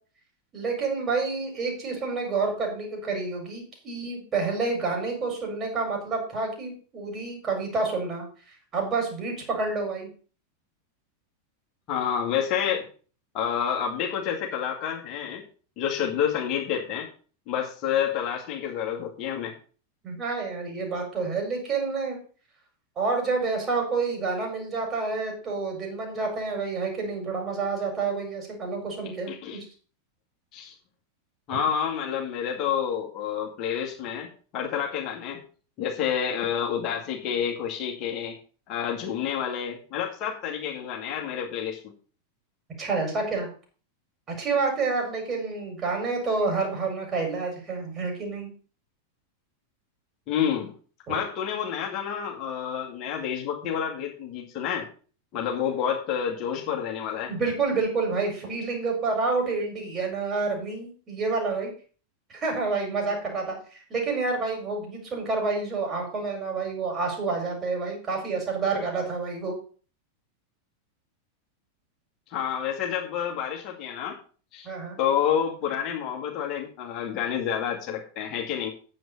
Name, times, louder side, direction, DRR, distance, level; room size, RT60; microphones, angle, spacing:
voice 1, 0.5-8.2 8.7-10.1 20.0-22.2 22.9-29.6 31.5-31.6 42.8-43.5 44.3-48.5 51.1-51.2 57.3-61.7 62.3-69.5 74.6-75.0, right 4 dB, 25° right, 2 dB, 5.2 m, -28 dB
voice 2, 11.9-12.8 13.3-15.4 15.8-17.1 17.5-19.5 29.3-29.6 30.5-30.7 31.5-34.3 34.5-35.4 35.8-38.3 38.7-41.8 50.3-50.7 51.1-54.9 55.3-57.3 72.3-74.2 74.5-74.7 75.0-78.7, left 8 dB, 35° left, -1 dB, 2.2 m, -29 dB
9.3 x 7.8 x 5.5 m, 0.40 s
figure-of-eight pair, 90°, 0 cm